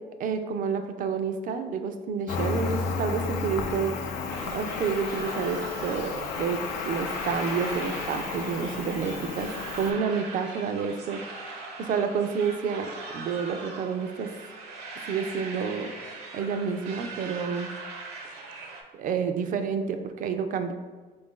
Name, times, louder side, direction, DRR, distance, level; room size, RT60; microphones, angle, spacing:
voice 1, 0.2-4.0 4.4-14.3 15.0-15.9 16.3-17.7 18.9-20.7, right 6 dB, 50° right, 8 dB, 0.4 m, -29 dB
Cricket, 2.3-9.9, left 4 dB, 85° left, 0.4 m, -32 dB
sound 1, 4.3-18.8, right 3 dB, 75° right, 0.7 m, -41 dB
4.0 x 2.6 x 3.6 m, 1.3 s
cardioid pair, 110°, 17 cm